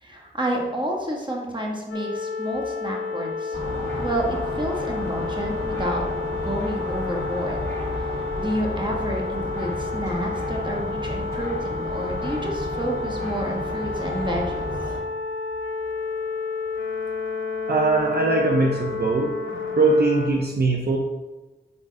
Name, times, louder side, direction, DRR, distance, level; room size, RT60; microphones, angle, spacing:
voice 1, 0.0-3.6 4.0-7.6 8.0-14.6, right 1 dB, 25° right, 0 dB, 1.5 m, -30 dB
sound 1, 1.9-20.3, left 4 dB, 75° left, 0.7 m, -30 dB
sound 2, 3.5-15.0, left 1 dB, 15° left, 1.8 m, -32 dB
voice 2, 17.7-19.3 19.8-21.0, right 2 dB, 50° right, 0 dB, 0.8 m, -21 dB
4.9 x 4.2 x 4.8 m, 1.2 s
cardioid pair, 45°, 20 cm